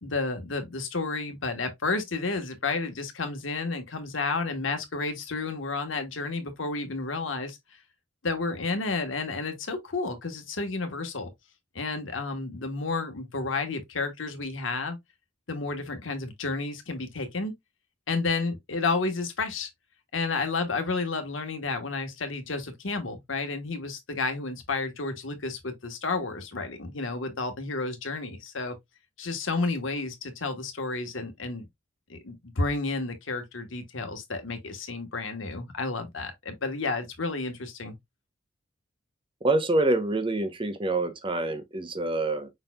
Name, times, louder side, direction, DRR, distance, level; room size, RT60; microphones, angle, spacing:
voice 1, 0.0-7.6 8.2-11.3 11.7-15.0 15.5-17.5 18.1-19.7 20.1-28.8 29.2-31.7 32.1-37.9, left 3 dB, 90° left, 1.2 m, -31 dB
voice 2, 39.4-42.5, right 2 dB, 25° right, 0.8 m, -26 dB
5.5 x 4.2 x 2.2 m
head